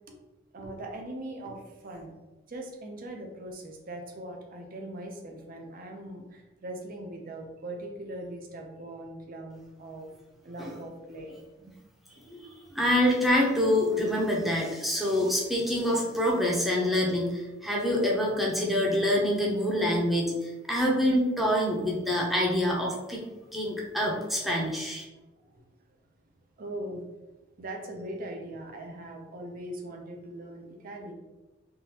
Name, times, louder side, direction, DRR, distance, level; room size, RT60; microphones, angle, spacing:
voice 1, 0.5-2.2 2.5-10.1 10.4-11.3 25.4-25.6 26.6-27.0 27.6-31.1, right 1 dB, 45° right, 2 dB, 0.6 m, -40 dB
voice 2, 12.7-23.2 23.5-25.0, left 1 dB, ahead, -3 dB, 0.7 m, -26 dB
3.7 x 2.5 x 2.8 m, 1.1 s
head